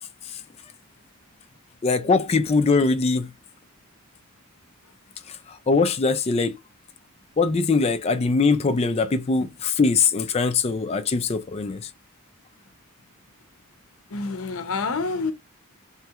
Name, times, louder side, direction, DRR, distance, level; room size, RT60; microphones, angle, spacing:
voice 1, 1.8-3.3 5.3-6.6 7.4-11.9, left 4 dB, 30° left, 0.3 m, -22 dB
voice 2, 14.1-15.3, left 4 dB, 70° left, 0.6 m, -27 dB
3.1 x 2.3 x 2.8 m
head